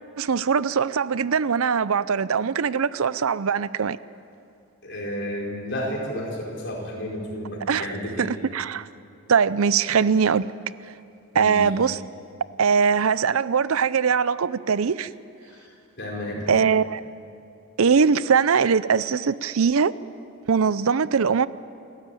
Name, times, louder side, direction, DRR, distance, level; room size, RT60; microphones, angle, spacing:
voice 1, 0.2-4.0 7.7-7.9 8.2-8.9 9.3-10.5 11.3-12.0 12.6-15.1 16.5-17.0 17.8-19.9 20.5-21.5, right 6 dB, 75° right, 0.5 m, -21 dB
voice 2, 4.8-8.3 11.3-11.7 15.5-16.5, equal, 50° left, 4.8 m, -32 dB
29.0 x 13.5 x 9.1 m
head